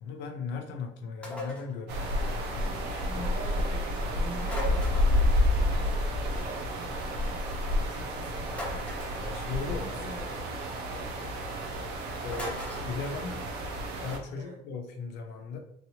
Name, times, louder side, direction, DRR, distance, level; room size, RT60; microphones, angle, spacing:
voice 1, 0.0-3.3 9.2-10.1 12.2-13.5 14.0-15.6, left 5 dB, 90° left, 4 dB, 0.6 m, -38 dB
sound 1, 1.2-1.7 4.4-5.3 8.5-9.2 12.3-12.9, left 1 dB, 5° left, 1.0 m, -38 dB
sound 2, 1.9-14.2, left 1 dB, 80° right, 0.7 m, -30 dB
voice 2, 3.1-7.4 7.9-8.9 9.8-10.3 14.3-14.6, right 2 dB, 50° right, -1 dB, 1.2 m, -45 dB
3.0 x 2.7 x 2.8 m, 0.70 s
cardioid pair, 110°, 17 cm